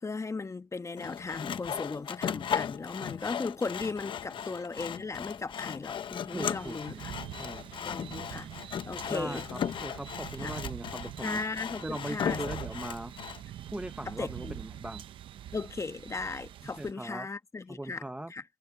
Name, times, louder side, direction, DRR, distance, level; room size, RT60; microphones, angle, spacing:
voice 1, 0.0-7.1 7.8-8.5 8.9-9.5 10.4-10.5 11.2-12.4 14.1-14.6 15.5-18.0 18.3-18.4, left 4 dB, 35° left, 1.2 m, -37 dB
Sawing, 1.0-13.4, left 8 dB, 75° left, 0.9 m, -37 dB
voice 2, 6.3-7.0 7.4-7.7 9.1-11.4 11.8-13.1 13.7-15.0 16.8-17.3 17.7-18.3, right 1 dB, 15° right, 0.8 m, -39 dB
sound 1, 6.4-16.9, right 11 dB, 90° right, 0.8 m, -44 dB
cardioid pair, 55°, 9 cm